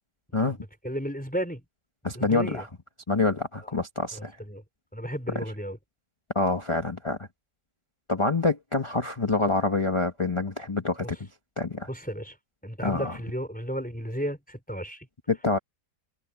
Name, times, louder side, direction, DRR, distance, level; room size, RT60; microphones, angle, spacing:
voice 1, 0.4-1.6 2.1-2.6 3.6-3.7 4.1-4.6 4.9-5.8 11.0-11.1 11.9-12.4 12.6-15.1, equal, 5° left, 4.9 m, -34 dB
voice 2, 2.0-2.7 3.1-4.3 6.3-7.2 8.1-11.2 11.6-11.9 12.8-13.2 15.3-15.6, left 3 dB, 20° left, 1.2 m, -26 dB
omnidirectional pair, 1.6 m